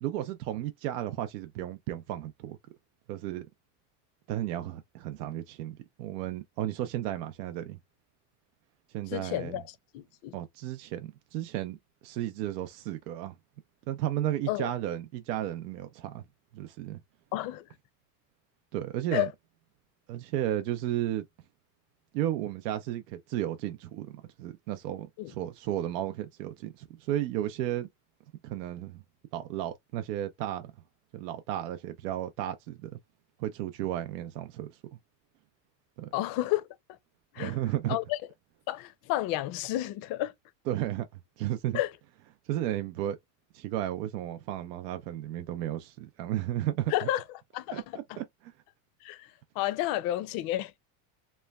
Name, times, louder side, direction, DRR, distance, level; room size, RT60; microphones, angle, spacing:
voice 1, 0.0-2.6 3.1-3.5 4.3-7.8 8.9-9.6 10.3-13.3 13.9-16.2 16.5-17.0 18.7-19.3 20.1-21.2 22.1-27.9 28.4-29.0 29.3-30.7 31.1-33.0 33.4-34.8 36.0-36.1 37.4-38.0 40.7-41.8 42.5-43.2 43.5-47.1 47.7-47.8 48.2-48.5, right 13 dB, 85° right, 0.6 m, -33 dB
voice 2, 9.1-9.6 9.9-10.4 14.5-14.7 17.3-17.7 19.1-19.3 25.2-25.3 36.1-36.6 37.3-37.6 37.9-38.2 38.7-40.3 41.7-41.9 46.9-47.2 47.5-48.2 49.0-49.3 49.6-50.7, left 15 dB, 50° left, 0.5 m, -31 dB
3.0 x 2.2 x 2.2 m
supercardioid pair, 130°, 47 cm